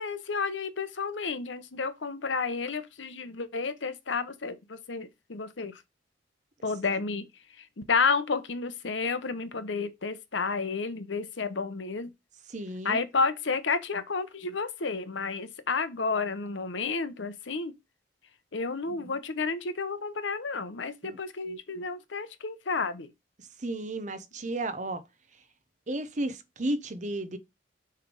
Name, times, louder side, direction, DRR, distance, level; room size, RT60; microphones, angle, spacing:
voice 1, 0.0-5.8 6.6-7.3 7.6-12.1 12.8-17.7 18.5-23.1, left 4 dB, 80° left, 0.9 m, -31 dB
voice 2, 12.5-13.0 18.9-19.1 21.0-21.2 23.4-25.0 25.9-27.4, right 1 dB, 40° right, 0.8 m, -33 dB
6.5 x 3.4 x 5.3 m
head